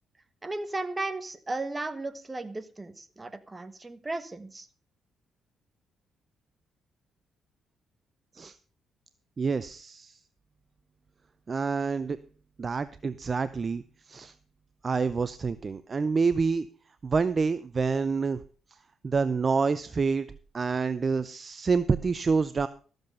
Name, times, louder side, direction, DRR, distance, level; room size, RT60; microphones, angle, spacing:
voice 1, 0.4-4.7, right 2 dB, 20° right, 12 dB, 1.3 m, -35 dB
voice 2, 9.4-10.2 11.5-12.2 12.6-14.3 14.8-16.7 17.0-18.4 19.0-20.3 20.5-22.7, right 5 dB, 35° right, 14 dB, 0.5 m, -27 dB
13.5 x 7.9 x 5.4 m, 0.40 s
cardioid pair, 90°, 0 cm